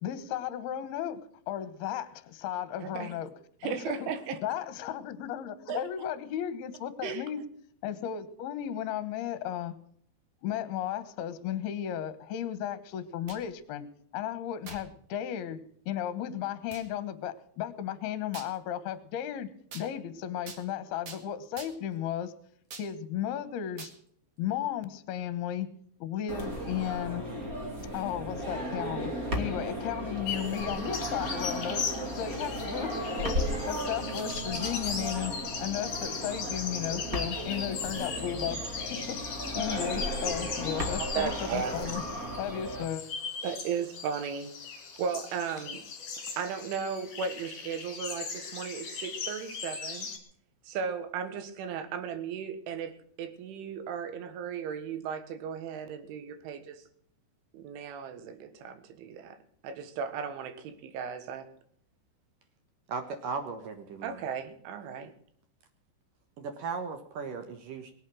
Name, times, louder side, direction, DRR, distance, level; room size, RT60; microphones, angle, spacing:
voice 1, 0.0-3.3 3.6-4.1 4.4-7.4 7.8-9.7 10.4-13.8 14.1-19.5 19.7-22.3 22.8-23.9 24.4-25.7 26.0-27.3 27.9-29.1 29.4-31.9 32.1-33.4 33.7-35.3 35.6-38.6 38.9-42.0 42.4-43.0, left 10 dB, 65° left, 13 dB, 2.8 m, -35 dB
voice 2, 2.8-3.1 3.6-4.4 5.7-5.8 7.0-7.2 41.2-42.0 43.4-44.5 45.0-45.8 46.4-50.1 50.7-56.8 57.5-59.4 59.6-61.5 64.0-65.1, right 6 dB, 85° right, 9 dB, 4.0 m, -36 dB
sound 1, 13.0-13.5 14.6-14.9 15.5-15.6 16.7-16.9 18.3-18.6 19.7-19.9 20.5-20.6 21.1-21.2 21.6-21.9 22.7-22.9 23.8-24.0, right 5 dB, 45° right, 2.6 m, -45 dB
sound 2, 26.3-42.8, equal, 25° right, 2.0 m, -35 dB
sound 3, 30.3-50.2, left 5 dB, 40° left, 3.2 m, -38 dB
voice 3, 62.9-64.2 66.4-67.9, right 5 dB, 65° right, 7 dB, 2.3 m, -37 dB
22.0 x 8.5 x 6.3 m, 0.63 s
omnidirectional pair, 5.4 m